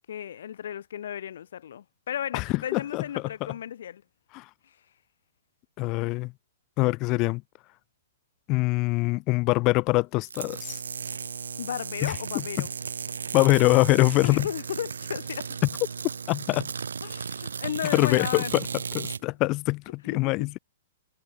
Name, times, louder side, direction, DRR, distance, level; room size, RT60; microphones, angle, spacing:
voice 1, 0.1-4.0 4.6-4.8 11.6-12.7 14.0-15.6 17.0-18.6 19.0-19.1 20.0-20.5, left 9 dB, 65° left, 2.0 m, -35 dB
voice 2, 2.7-3.0 4.3-4.4 5.8-6.3 6.8-7.4 8.5-10.8 12.0-12.7 13.3-14.5 16.3-16.7 17.9-18.7 18.9-20.6, left 23 dB, 35° left, 0.3 m, -24 dB
sound 1, 10.2-19.2, right 6 dB, 75° right, 2.8 m, -35 dB
hypercardioid pair, 120°, 0 cm